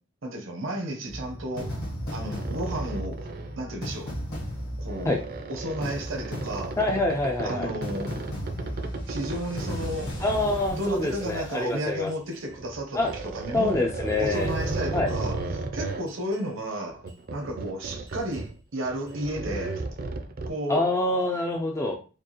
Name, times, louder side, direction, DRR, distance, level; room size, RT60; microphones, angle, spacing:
voice 1, 0.2-1.7 2.1-3.3 3.6-4.2 4.8-5.2 5.5-6.8 7.4-8.1 9.0-10.1 10.4-13.9 14.2-17.0 17.3-19.8 20.4-20.9, right 1 dB, 80° right, 0.8 m, -33 dB
sound 1, 1.1-12.4 13.1-13.2 14.1-15.3 16.1-16.4 17.1-17.2 18.1-18.4 19.1-19.2, equal, 55° left, 1.4 m, -36 dB
sound 2, 2.2-3.7 4.1-4.4 4.9-11.6 12.4-16.1 16.9-18.6 18.9-20.5, right 3 dB, 50° right, 0.5 m, -35 dB
voice 2, 6.8-7.7 10.2-12.1 12.9-13.1 13.5-14.5 14.9-15.1 20.7-21.9, left 2 dB, 15° left, 0.3 m, -26 dB
4.5 x 2.3 x 3.0 m
head